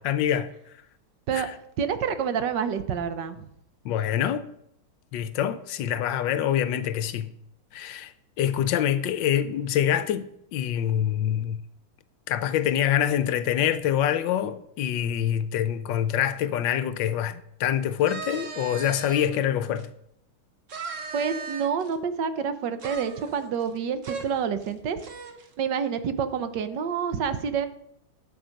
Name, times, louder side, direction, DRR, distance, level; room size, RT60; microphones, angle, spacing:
voice 1, 0.0-0.5 1.3-1.5 3.8-4.5 5.1-7.3 7.7-11.6 12.3-19.9, left 10 dB, 75° left, 1.2 m, -25 dB
voice 2, 1.8-3.5 21.1-25.0 25.6-27.7, right 7 dB, 65° right, 1.4 m, -28 dB
sound 1, 18.0-19.3 19.8-19.9 20.7-21.9 22.8-23.8 24.0-24.3 24.6-24.7 25.0-25.5, right 5 dB, 45° right, 1.3 m, -37 dB
11.5 x 8.1 x 5.1 m
omnidirectional pair, 2.3 m